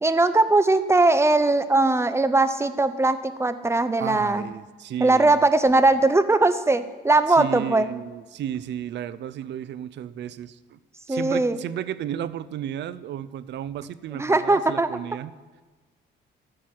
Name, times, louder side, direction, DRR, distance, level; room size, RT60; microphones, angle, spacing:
voice 1, 0.0-4.4 5.0-7.9 11.1-11.6 14.1-14.9, right 2 dB, 15° right, 12 dB, 0.6 m, -20 dB
voice 2, 4.0-5.4 7.3-10.8 11.1-15.3, right 10 dB, 65° right, 16 dB, 0.5 m, -33 dB
13.5 x 4.6 x 7.3 m, 1.3 s
cardioid pair, 90°, 20 cm